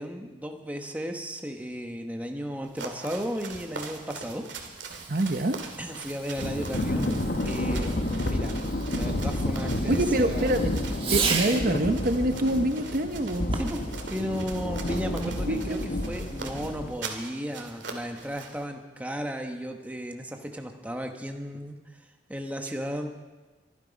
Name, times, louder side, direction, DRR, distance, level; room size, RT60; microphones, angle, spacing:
voice 1, 0.0-4.4 5.8-7.1 7.4-8.6 8.9-10.5 11.0-11.3 13.5-13.8 14.1-22.0 22.3-23.1, equal, 10° right, 4 dB, 1.1 m, -35 dB
sound 1, 2.6-18.6, right 4 dB, 75° right, 2.2 m, -42 dB
Fireworks, 4.7-11.8 13.4-13.9, right 5 dB, 30° right, 1.5 m, -36 dB
voice 2, 5.1-5.6 9.9-10.7 11.1-13.5 15.2-15.8, right 1 dB, 50° right, 7 dB, 0.8 m, -26 dB
Thunder / Rain, 6.4-16.9, left 1 dB, 55° left, 1.1 m, -30 dB
24.0 x 11.0 x 5.2 m, 1.3 s
head